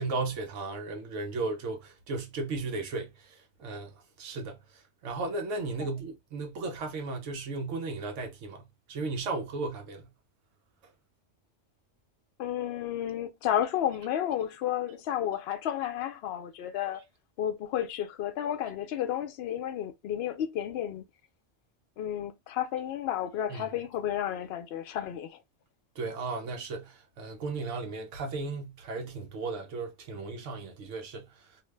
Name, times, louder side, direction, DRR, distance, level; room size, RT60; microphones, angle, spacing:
voice 1, 0.0-10.1 23.5-23.7 26.0-31.6, right 3 dB, 85° right, 1.0 m, -35 dB
voice 2, 12.4-17.0 17.4-21.0 22.0-25.4, left 10 dB, 65° left, 0.8 m, -32 dB
2.7 x 2.1 x 3.2 m
omnidirectional pair, 1.2 m